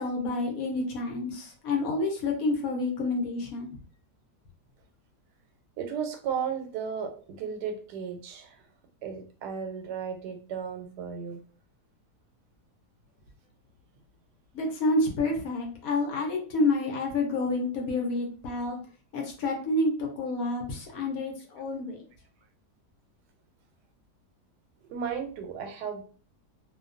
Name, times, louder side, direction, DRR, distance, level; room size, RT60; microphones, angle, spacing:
voice 1, 0.0-3.8 14.5-18.8 19.1-22.0, left 2 dB, 65° left, 1 dB, 1.0 m, -29 dB
voice 2, 5.8-8.7 9.0-11.4 24.8-26.0, right 7 dB, 85° right, 5 dB, 1.2 m, -35 dB
2.7 x 2.2 x 2.4 m, 0.40 s
omnidirectional pair, 1.7 m